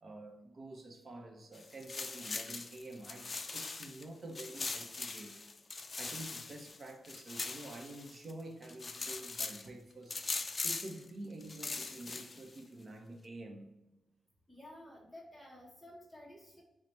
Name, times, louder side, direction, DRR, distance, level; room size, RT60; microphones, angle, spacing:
voice 1, 0.0-5.4 5.8-10.1 10.6-13.7, right 2 dB, 45° right, 0.7 m, -48 dB
sound 1, 1.5-4.0 4.4-8.3 8.6-9.7 10.1-11.0 11.4-12.6, left 3 dB, 35° left, 0.3 m, -41 dB
voice 2, 14.5-16.6, left 1 dB, 5° right, 0.8 m, -53 dB
4.5 x 2.1 x 4.0 m
cardioid pair, 95°, 0 cm